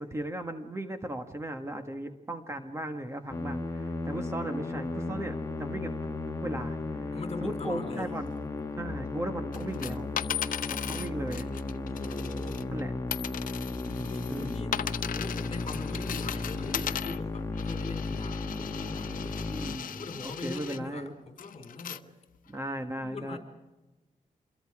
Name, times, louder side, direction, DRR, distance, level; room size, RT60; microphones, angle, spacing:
voice 1, 0.0-6.1 6.4-7.1 7.4-8.3 8.8-10.1 10.7-11.5 12.7-12.9 14.3-14.7 19.5-21.1 22.5-23.4, right 1 dB, 20° right, 6 dB, 1.6 m, -37 dB
Musical instrument, 3.3-20.4, left 2 dB, 20° left, 2.1 m, -35 dB
voice 2, 7.1-8.1 11.9-12.7 13.7-19.4 19.9-22.1 23.0-23.4, left 3 dB, 45° left, 6 dB, 4.2 m, -41 dB
sound 1, 9.5-12.8 13.1-20.8 21.4-22.0 22.5-22.6, left 9 dB, 85° left, 0.8 m, -37 dB
27.5 x 22.5 x 4.9 m, 1.1 s
wide cardioid pair, 120°, 14 cm